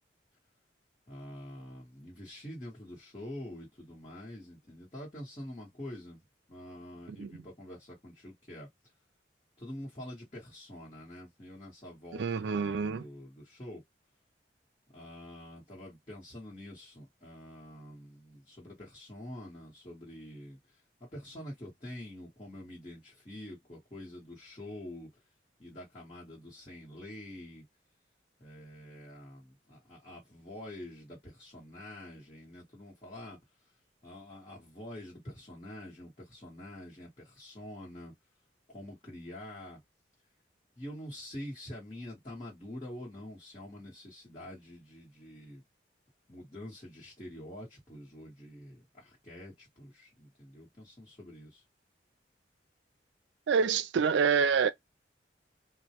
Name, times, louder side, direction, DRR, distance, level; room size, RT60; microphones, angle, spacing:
voice 1, 1.1-6.2 6.5-8.7 9.6-13.8 14.9-25.1 25.6-27.6 28.4-33.4 34.0-38.1 38.7-39.8 40.8-45.6 46.3-51.6, left 1 dB, 30° left, 1.0 m, -46 dB
voice 2, 12.1-13.0 53.5-54.7, right 6 dB, 80° right, 0.4 m, -27 dB
2.2 x 2.1 x 2.8 m
head